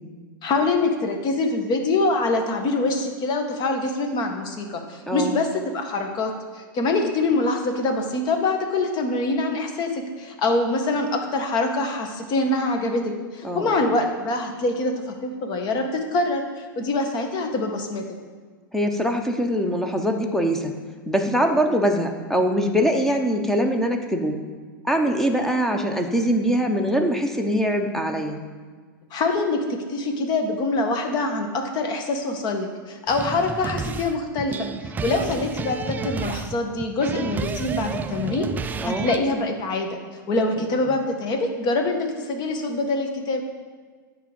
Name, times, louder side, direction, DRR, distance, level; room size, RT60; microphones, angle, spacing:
voice 1, 0.4-18.0 29.1-43.4, left 2 dB, 35° left, 4 dB, 1.4 m, -25 dB
voice 2, 5.1-5.4 13.4-13.8 18.7-20.7 21.1-24.4 24.8-28.4 38.8-39.1, equal, 5° left, 4 dB, 1.0 m, -23 dB
sound 1, 33.1-39.2, right 5 dB, 15° right, 0.3 m, -31 dB
10.0 x 3.8 x 7.2 m, 1.5 s
hypercardioid pair, 110°, 12 cm